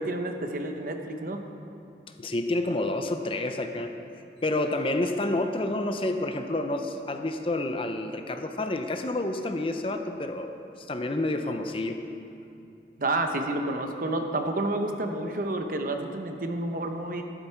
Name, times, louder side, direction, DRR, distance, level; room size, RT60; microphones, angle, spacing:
voice 1, 0.0-1.4 13.0-17.2, right 2 dB, 50° right, 5 dB, 0.9 m, -30 dB
voice 2, 2.2-3.9 4.4-12.0, left 2 dB, 30° left, 6 dB, 0.6 m, -29 dB
12.0 x 12.0 x 4.5 m, 2.6 s
head